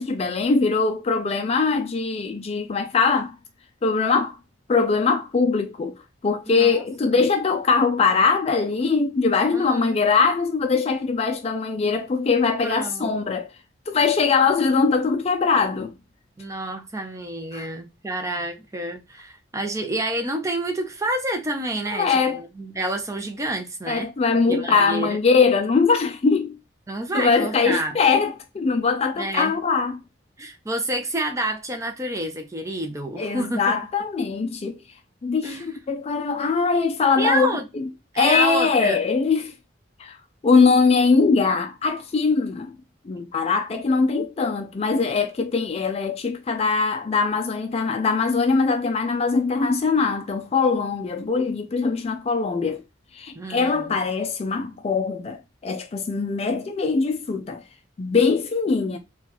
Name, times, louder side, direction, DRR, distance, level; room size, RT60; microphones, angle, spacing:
voice 1, 0.0-3.4 3.8-4.4 4.7-13.5 13.9-15.9 17.5-17.7 21.9-22.4 23.9-26.6 27.1-30.0 33.2-34.8 35.2-37.9 38.2-39.5 40.0-40.2 40.4-42.7 43.1-52.8 53.1-57.6 58.0-59.0, left 4 dB, 30° left, 0.3 m, -22 dB
voice 2, 6.5-7.2 9.5-10.0 12.6-13.1 16.4-24.1 24.5-25.2 26.9-28.0 29.2-29.6 30.4-33.8 35.4-35.7 37.2-37.7 38.1-39.0 53.3-53.9 58.8-59.0, right 1 dB, 15° right, 0.6 m, -29 dB
4.1 x 2.3 x 2.9 m
head